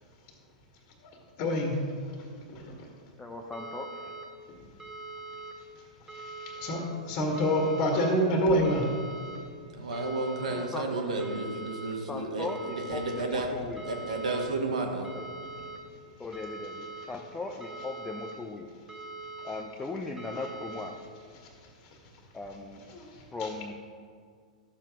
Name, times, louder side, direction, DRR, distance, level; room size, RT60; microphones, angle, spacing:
voice 1, 1.4-1.8 2.5-2.7 6.4-8.9 22.9-23.0 23.4-23.5, equal, 40° left, 0 dB, 1.9 m, -26 dB
voice 2, 3.2-4.2 10.5-11.1 12.1-13.9 15.1-15.3 16.2-18.7 19.4-21.0 22.3-22.8 23.3-23.7, left 3 dB, 10° left, 1 dB, 0.7 m, -38 dB
sound 1, 3.5-4.2 4.8-5.5 6.1-6.8 7.4-8.1 8.6-9.4 9.9-10.6 11.2-11.9 12.5-13.2 13.8-14.5 15.0-15.8 16.3-17.1 17.6-18.3 18.9-19.6 20.2-20.9, right 3 dB, 10° right, 1.9 m, -42 dB
voice 3, 9.7-13.5 13.9-15.1, right 2 dB, 70° right, 2 dB, 1.7 m, -32 dB
13.0 x 7.4 x 3.7 m, 2.1 s
figure-of-eight pair, 105°, 4 cm